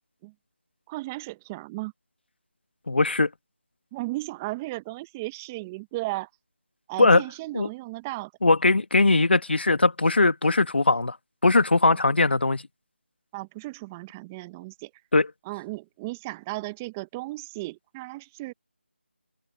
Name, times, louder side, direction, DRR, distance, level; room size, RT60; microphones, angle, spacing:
voice 1, 0.9-1.9 3.9-6.3 6.9-8.3 11.9-12.0 13.3-14.9 15.4-18.5, right 21 dB, 10° right, 1.1 m, -35 dB
voice 2, 2.9-3.3 7.0-7.2 7.5-7.7 8.4-11.1 11.4-12.6 15.1-15.3, left 3 dB, 60° left, 1.5 m, -20 dB
open air
figure-of-eight pair, 165°, 6 cm